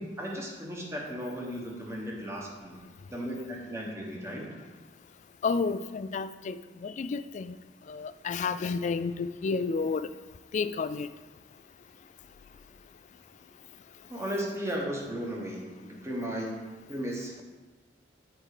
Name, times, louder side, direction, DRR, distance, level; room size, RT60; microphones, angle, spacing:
voice 1, 0.0-2.8 3.1-4.5 14.1-16.5 16.9-17.4, equal, 15° right, 1.4 m, -35 dB
voice 2, 5.4-6.6 6.8-7.5 7.9-10.1 10.5-11.1, left 4 dB, 40° left, 0.3 m, -30 dB
7.5 x 4.7 x 5.0 m
head